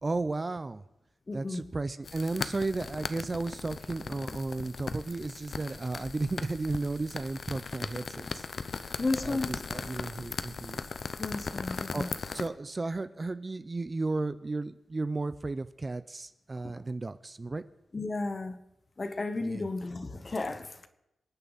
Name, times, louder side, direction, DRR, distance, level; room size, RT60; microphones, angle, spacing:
voice 1, 0.0-0.8 1.3-10.8 11.9-17.6 19.4-19.7, right 3 dB, 25° right, 0.5 m, -34 dB
voice 2, 1.3-1.7 9.0-9.6 11.2-12.1 16.6-16.7 17.9-18.6 19.0-20.9, left 2 dB, 30° left, 1.1 m, -33 dB
sound 1, 2.0-12.5, left 4 dB, 50° left, 0.7 m, -38 dB
27.5 x 9.4 x 4.1 m
wide cardioid pair, 115°, 0 cm